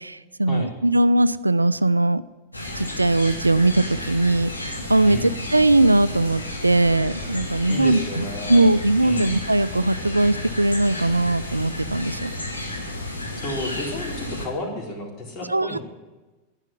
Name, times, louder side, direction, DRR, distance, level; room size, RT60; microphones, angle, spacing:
voice 1, 0.0-2.2 2.7-12.3 15.5-15.8, right 2 dB, 85° right, 16 dB, 0.4 m, -20 dB
sound 1, 2.5-14.5, left 1 dB, 85° left, 2.2 m, -32 dB
voice 2, 7.7-8.7 9.0-9.4 13.4-15.8, left 1 dB, 30° left, -1 dB, 3.8 m, -32 dB
11.0 x 9.9 x 9.8 m, 1.2 s
figure-of-eight pair, 90°, 0 cm